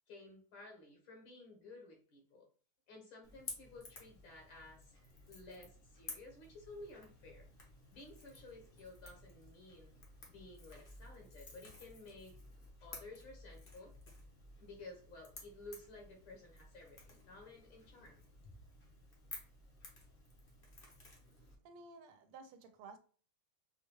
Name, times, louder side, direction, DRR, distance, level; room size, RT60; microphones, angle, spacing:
voice 1, 0.1-2.5 2.9-4.9 5.3-7.5 7.9-9.9 10.3-12.4 12.8-13.9 14.6-18.5, left 2 dB, 70° left, 1.8 m, -54 dB
Crackle / Crack, 3.2-21.5, left 2 dB, 45° left, 0.7 m, -54 dB
voice 2, 21.6-23.0, right 4 dB, 85° right, 1.5 m, -54 dB
4.8 x 2.3 x 3.0 m
omnidirectional pair, 2.4 m